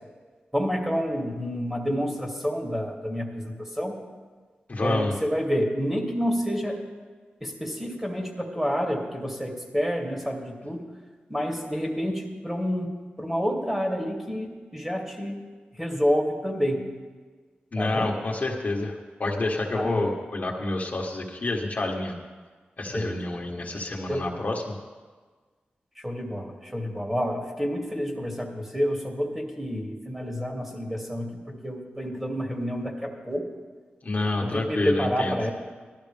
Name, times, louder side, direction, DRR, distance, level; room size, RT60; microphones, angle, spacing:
voice 1, 0.5-4.0 4.8-6.8 7.4-10.8 11.3-12.9 13.2-15.4 15.8-16.9 17.8-18.1 19.7-20.1 22.9-23.2 24.1-24.3 26.0-33.5 34.4-35.5, equal, 10° right, 0 dB, 2.7 m, -29 dB
voice 2, 4.7-5.2 17.7-18.9 19.2-22.1 22.8-24.7 34.0-35.4, left 2 dB, 45° left, -1 dB, 1.5 m, -28 dB
17.5 x 12.5 x 3.5 m, 1.4 s
cardioid pair, 65°, 4 cm